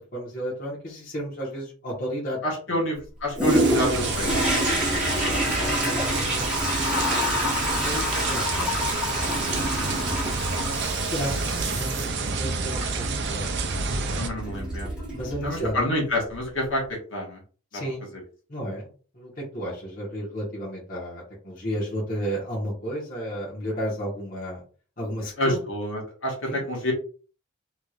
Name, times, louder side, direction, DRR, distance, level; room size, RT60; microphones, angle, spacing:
voice 1, 0.1-2.4 2.7-2.8 5.8-6.5 7.6-10.2 10.8-14.3 15.1-15.9 17.7-18.1 18.5-24.6 25.0-25.6 26.5-26.6, equal, 40° left, -5 dB, 1.4 m, -33 dB
voice 2, 2.4-4.3 5.0-5.7 14.2-14.9 15.4-16.8 17.1-17.4 17.7-17.8 25.4-26.9, left 1 dB, 60° left, -2 dB, 1.5 m, -28 dB
Toilet flush, 3.3-15.8 16.3-16.4, equal, 5° right, 1.4 m, -28 dB
sound 1, 3.5-14.3, right 4 dB, 55° right, 0.5 m, -29 dB
3.7 x 3.1 x 2.4 m, 0.39 s
head